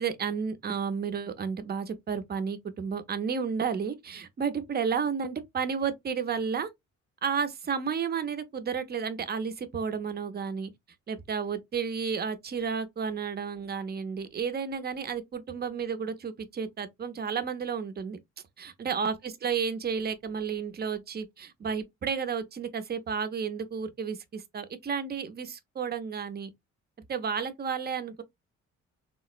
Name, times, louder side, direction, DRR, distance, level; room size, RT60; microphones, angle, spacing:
voice 1, 0.0-6.7 7.2-10.7 11.1-18.2 18.6-26.5 27.1-28.2, right 6 dB, 35° right, 0.6 m, -32 dB
3.6 x 2.0 x 2.4 m
cardioid pair, 90°, 30 cm